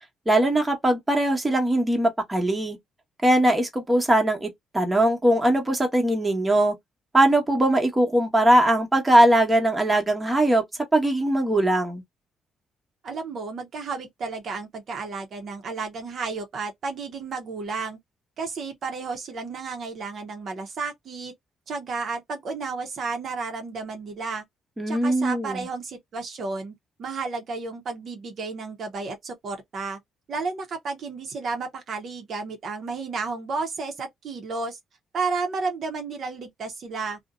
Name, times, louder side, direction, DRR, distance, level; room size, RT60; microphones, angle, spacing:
voice 1, 0.3-2.8 3.2-6.7 7.1-10.6 10.9-12.0 24.8-25.7, right 1 dB, 15° right, 1.0 m, -21 dB
voice 2, 13.0-18.0 18.4-21.3 21.7-24.4 24.9-26.7 27.0-30.0 30.3-34.8 35.1-37.2, right 4 dB, 60° right, 0.7 m, -32 dB
2.6 x 2.1 x 2.4 m
cardioid pair, 90°, 0 cm